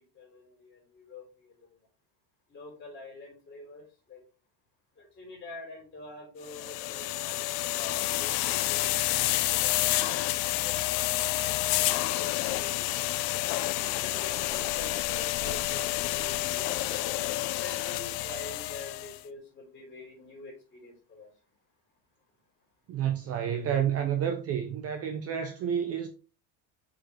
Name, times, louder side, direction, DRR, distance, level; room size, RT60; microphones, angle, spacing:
voice 1, 0.1-1.7 2.5-4.2 5.0-9.3 9.6-11.0 11.7-13.0 14.0-17.0 17.5-21.3, left 3 dB, 25° left, 3.6 m, -46 dB
sound 1, 6.5-19.2, left 16 dB, 80° left, 0.6 m, -29 dB
voice 2, 22.9-26.1, right 9 dB, 35° right, 0.5 m, -29 dB
6.3 x 5.0 x 3.2 m
cardioid pair, 175°, 45 cm